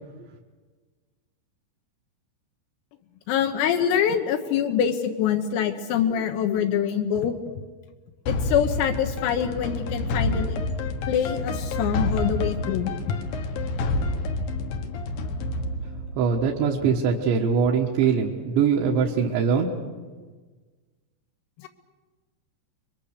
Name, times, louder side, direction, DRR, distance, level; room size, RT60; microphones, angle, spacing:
voice 1, 3.3-7.4 8.3-10.6 11.1-13.1 21.6-21.7, left 8 dB, 85° left, 4 dB, 3.8 m, -25 dB
sound 1, 8.3-17.1, left 2 dB, 70° left, 2.3 m, -29 dB
voice 2, 16.2-19.7, right 6 dB, 65° right, -2 dB, 3.5 m, -22 dB
29.5 x 23.0 x 6.7 m, 1.4 s
omnidirectional pair, 6.0 m